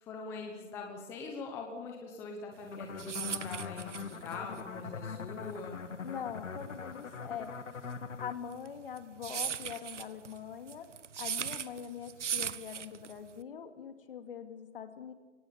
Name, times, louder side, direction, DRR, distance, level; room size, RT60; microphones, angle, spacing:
voice 1, 0.0-5.8, left 4 dB, 5° left, 1 dB, 0.9 m, -43 dB
sound 1, 2.6-13.4, right 8 dB, 70° right, 1.2 m, -39 dB
sound 2, 2.7-8.4, left 6 dB, 90° left, 1.6 m, -42 dB
voice 2, 6.0-7.6 8.2-10.9 11.2-15.1, left 8 dB, 45° left, 7 dB, 2.5 m, -43 dB
24.0 x 19.0 x 7.1 m, 1.3 s
hypercardioid pair, 160°, 38 cm